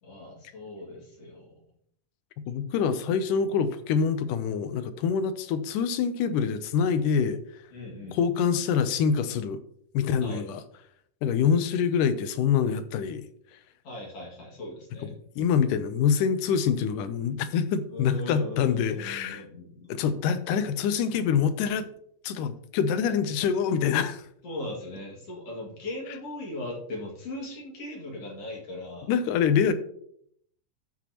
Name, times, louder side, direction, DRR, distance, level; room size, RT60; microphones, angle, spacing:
voice 1, 0.0-1.5 3.0-3.1 7.7-8.2 10.2-10.5 13.8-15.1 17.9-19.9 24.4-29.1 29.6-29.7, left 2 dB, 50° left, -2 dB, 3.1 m, -38 dB
voice 2, 2.5-7.4 8.1-9.6 9.9-10.6 11.2-13.2 15.4-19.4 19.9-21.9 22.2-24.2 29.1-29.7, left 7 dB, 80° left, 11 dB, 2.1 m, -25 dB
13.0 x 6.0 x 3.0 m, 0.68 s
omnidirectional pair, 4.0 m